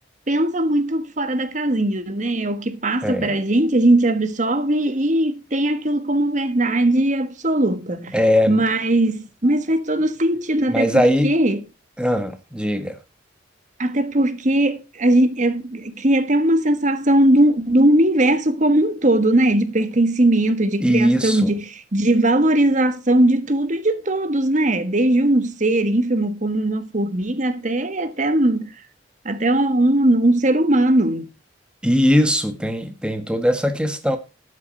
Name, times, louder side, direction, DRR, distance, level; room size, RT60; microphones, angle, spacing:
voice 1, 0.3-8.1 8.5-10.9 11.2-11.6 13.8-28.7 29.2-31.3, right 1 dB, 40° right, 1.4 m, -19 dB
voice 2, 3.0-3.4 8.1-8.6 10.7-11.3 12.0-13.0 20.8-21.5 31.8-34.2, equal, 5° right, 1.5 m, -20 dB
13.0 x 8.3 x 4.2 m
head